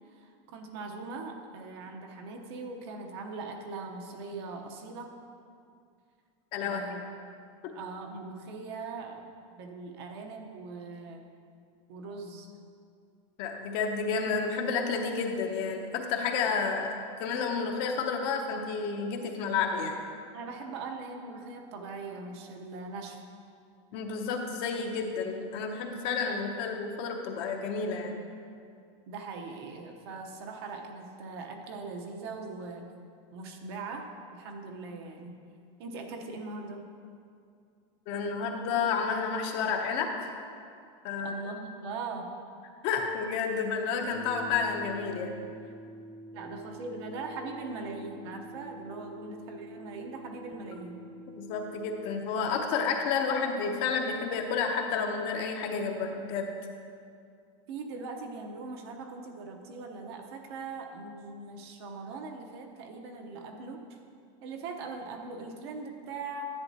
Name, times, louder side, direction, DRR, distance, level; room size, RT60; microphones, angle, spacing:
voice 1, 0.1-5.1 6.6-7.0 7.7-11.2 11.9-12.5 20.3-23.2 29.1-32.8 33.3-35.4 35.8-36.9 41.2-42.3 46.3-51.0 57.7-64.0 64.4-66.5, right 3 dB, 55° right, 3 dB, 0.9 m, -41 dB
voice 2, 6.5-6.8 13.4-20.0 23.9-28.2 38.1-40.1 41.0-41.4 42.8-45.3 51.3-56.5, left 5 dB, 35° left, 3 dB, 0.7 m, -30 dB
sound 1, 44.0-52.1, right 1 dB, 75° right, 1.1 m, -47 dB
10.5 x 8.3 x 2.8 m, 2.3 s
supercardioid pair, 175°, 16 cm